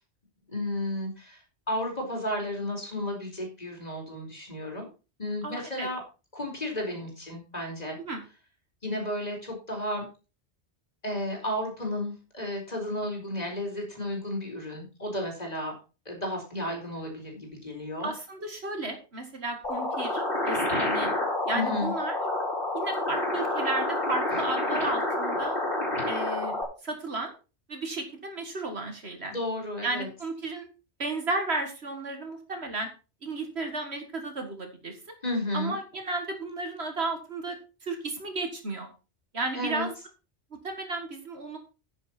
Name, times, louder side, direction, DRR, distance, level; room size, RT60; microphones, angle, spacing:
voice 1, 0.5-1.4 1.7-4.9 5.2-6.0 6.3-8.0 8.8-10.1 11.0-15.7 16.1-18.1 21.5-21.9 29.3-30.1 35.2-35.8 39.5-39.9, left 1 dB, 35° left, 1 dB, 4.4 m, -33 dB
voice 2, 5.4-5.9 8.0-8.2 18.0-21.1 21.5-22.2 22.7-25.6 26.1-27.3 27.7-29.3 29.8-30.7 31.0-32.9 33.2-35.0 35.5-37.6 37.8-38.9 39.3-39.9 40.6-41.6, right 2 dB, 65° right, 5 dB, 2.1 m, -33 dB
sound 1, 19.6-26.6, left 1 dB, 50° left, 4.8 m, -28 dB
10.0 x 9.4 x 4.3 m, 0.32 s
omnidirectional pair, 1.2 m